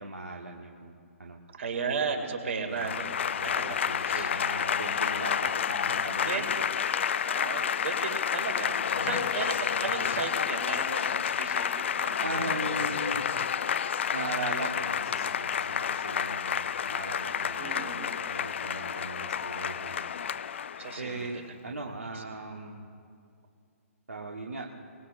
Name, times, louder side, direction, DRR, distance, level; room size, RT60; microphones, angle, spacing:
voice 1, 0.0-1.4 2.6-2.9 3.4-6.5 8.9-9.3 12.2-13.2 14.1-20.0 20.3-20.5 20.9-22.9 24.1-24.7, right 2 dB, 80° right, 0 dB, 1.4 m, -39 dB
voice 2, 1.5-3.2 3.4-3.8 4.1-4.4 6.2-6.7 7.2-12.6 17.6-18.4 20.8-21.5 22.1-22.2, right 5 dB, 60° right, 3 dB, 2.5 m, -35 dB
Applause / Crowd, 2.7-21.3, left 8 dB, 55° left, 0.4 m, -30 dB
24.0 x 21.0 x 2.6 m, 2.3 s
figure-of-eight pair, 125°, 8 cm